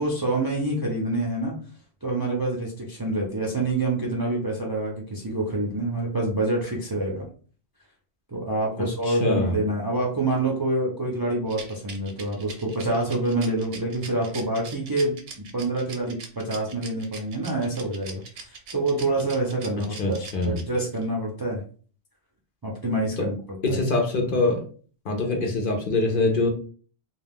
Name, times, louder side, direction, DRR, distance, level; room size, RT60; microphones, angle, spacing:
voice 1, 0.0-1.5 2.0-7.3 8.3-21.6 22.6-23.4 23.7-23.8, right 2 dB, 30° right, -3 dB, 0.5 m, -27 dB
voice 2, 8.8-9.5 20.0-20.6 23.2-23.3 23.6-24.6 25.1-26.5, left 2 dB, 60° left, 2 dB, 0.7 m, -24 dB
Rattle, 11.5-21.0, right 5 dB, 80° right, 0.9 m, -41 dB
2.3 x 2.3 x 3.4 m, 0.42 s
omnidirectional pair, 1.1 m